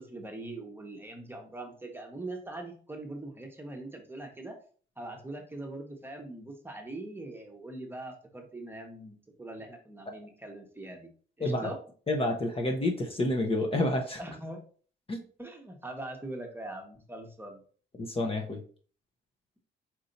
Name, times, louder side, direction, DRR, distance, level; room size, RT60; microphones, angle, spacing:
voice 1, 0.0-4.6 5.0-11.1 11.4-11.8 14.2-14.6 15.4-17.6, right 2 dB, 10° right, 3 dB, 1.1 m, -42 dB
voice 2, 12.1-14.2 15.1-15.2 18.0-18.6, left 1 dB, 30° left, 2 dB, 0.8 m, -29 dB
4.4 x 2.7 x 3.9 m, 0.43 s
cardioid pair, 90°, 20 cm